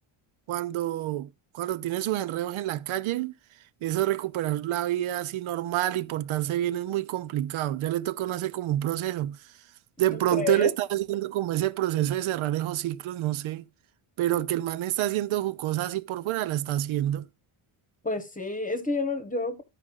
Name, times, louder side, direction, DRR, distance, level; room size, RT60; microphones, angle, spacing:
voice 1, 0.5-3.3 3.8-9.4 10.0-13.7 14.2-17.3, right 13 dB, 75° right, 0.7 m, -28 dB
voice 2, 10.1-10.7 18.0-19.6, left 3 dB, 15° left, 1.1 m, -29 dB
14.5 x 5.0 x 2.4 m
cardioid pair, 135°, 49 cm